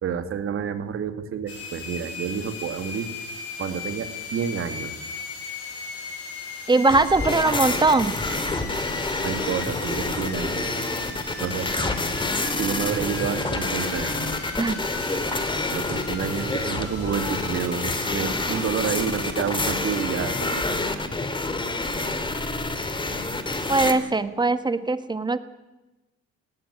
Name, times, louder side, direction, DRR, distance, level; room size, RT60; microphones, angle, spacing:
voice 1, 0.0-3.1 3.6-4.9 9.2-10.6 11.4-11.7 12.6-14.2 15.7-20.6, right 7 dB, 50° right, 9 dB, 2.4 m, -29 dB
sound 1, 1.5-20.0, left 4 dB, 50° left, 6.1 m, -38 dB
voice 2, 6.7-8.1 14.6-14.8 23.7-25.4, right 3 dB, 15° right, 12 dB, 1.3 m, -21 dB
sound 2, 6.9-23.9, left 2 dB, 15° left, 2.5 m, -28 dB
18.0 x 16.0 x 9.9 m, 1.1 s
cardioid pair, 105°, 29 cm